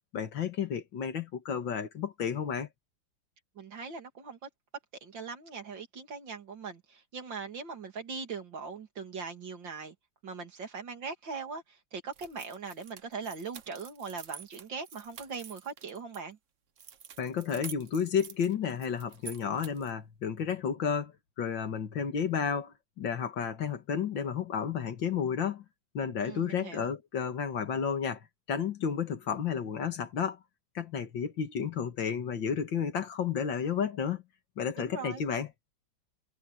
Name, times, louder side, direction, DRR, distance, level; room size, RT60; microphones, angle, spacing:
voice 1, 0.1-2.7 17.2-21.1 21.4-25.6 25.9-30.4 30.7-34.2 34.6-35.5, left 7 dB, 90° left, 2.4 m, -32 dB
voice 2, 3.5-4.5 5.0-9.9 10.2-16.4 26.2-26.9 34.8-35.2, right 5 dB, 80° right, 3.3 m, -40 dB
sound 1, 12.1-16.2 16.8-20.0, right 8 dB, 50° right, 1.2 m, -48 dB
omnidirectional pair, 2.0 m